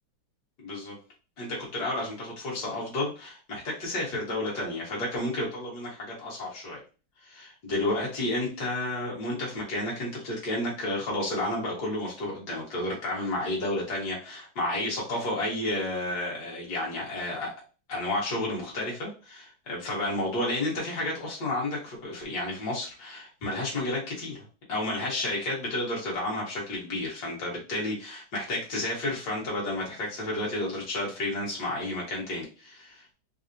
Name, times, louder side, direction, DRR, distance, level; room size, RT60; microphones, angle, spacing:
voice 1, 0.6-1.0 1.4-6.8 7.2-17.5 17.9-24.4 24.7-33.1, left 1 dB, 55° left, -4 dB, 1.7 m, -31 dB
4.2 x 2.0 x 2.6 m, 0.35 s
omnidirectional pair, 2.3 m